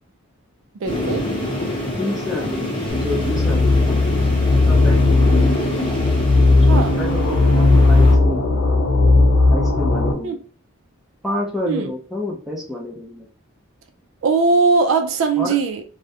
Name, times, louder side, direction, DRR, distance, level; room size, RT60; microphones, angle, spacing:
sound 1, 0.8-8.1, left 1 dB, 25° left, 0.8 m, -25 dB
voice 1, 0.8-1.3 6.7-6.9 10.2-10.4 11.7-11.9 14.2-15.8, right 4 dB, 60° right, 0.3 m, -19 dB
voice 2, 2.0-2.7 3.0-4.0 4.5-5.3 6.7-8.9 9.5-10.4 11.2-13.3 15.4-15.6, left 1 dB, ahead, 0.5 m, -29 dB
sound 2, 2.9-10.1, left 2 dB, 65° left, 0.5 m, -16 dB
2.3 x 2.1 x 2.7 m
head